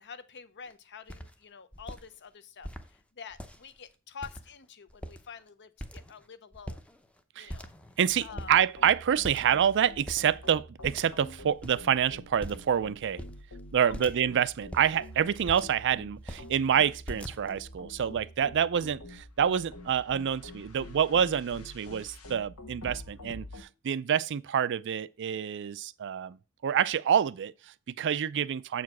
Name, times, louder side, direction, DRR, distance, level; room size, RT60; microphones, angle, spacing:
voice 1, 0.0-6.8 7.4-7.7 8.2-8.6 13.8-14.1, left 6 dB, 55° left, 0.8 m, -47 dB
sound 1, 0.7-0.8 1.1-1.3 1.7-2.0 2.6-2.9 3.3-3.8 4.2-4.6 4.9-5.4 5.8-6.3 6.5-7.2 7.5-8.0 8.4-8.6 9.2-9.6 9.9-10.3 10.8-11.3 11.6-11.7 12.4-12.8 13.2-13.4 13.9-14.2 14.6-15.8 16.2-16.5 17.1-17.7, equal, 5° left, 0.7 m, -42 dB
voice 2, 8.0-13.2 13.7-26.4 26.6-28.8, right 8 dB, 55° right, 0.4 m, -27 dB
sound 2, 8.1-23.6, left 1 dB, 85° left, 1.4 m, -47 dB
7.3 x 4.8 x 5.9 m
head